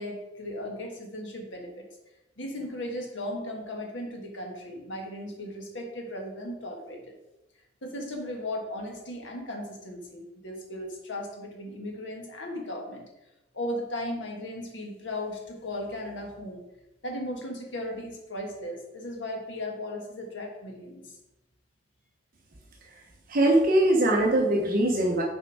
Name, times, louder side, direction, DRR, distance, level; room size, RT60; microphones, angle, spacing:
voice 1, 0.0-1.9 2.4-7.1 7.8-13.1 13.5-16.6 17.0-21.2, left 1 dB, 80° left, 1 dB, 1.6 m, -36 dB
voice 2, 23.3-25.2, right 1 dB, 50° right, -1 dB, 1.0 m, -22 dB
6.7 x 4.6 x 4.8 m, 0.96 s
head